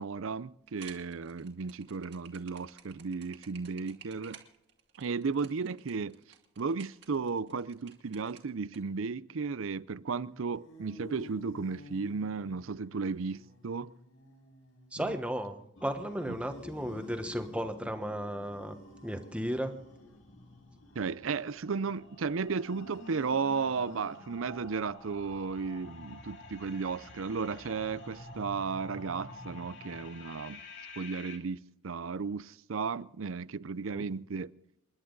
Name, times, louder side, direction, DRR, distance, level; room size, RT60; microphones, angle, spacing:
voice 1, 0.0-4.4 5.0-6.2 6.6-13.9 21.0-30.6 31.0-34.5, right 5 dB, 80° right, 0.6 m, -34 dB
sound 1, 0.7-8.8, right 8 dB, 55° right, 2.2 m, -54 dB
sound 2, 10.2-24.6, left 2 dB, 85° left, 5.4 m, -53 dB
voice 2, 14.9-18.8 19.0-19.7 33.9-34.0, equal, 5° right, 1.2 m, -35 dB
sound 3, 15.8-31.4, left 2 dB, 65° left, 2.4 m, -50 dB
28.5 x 11.0 x 4.0 m
head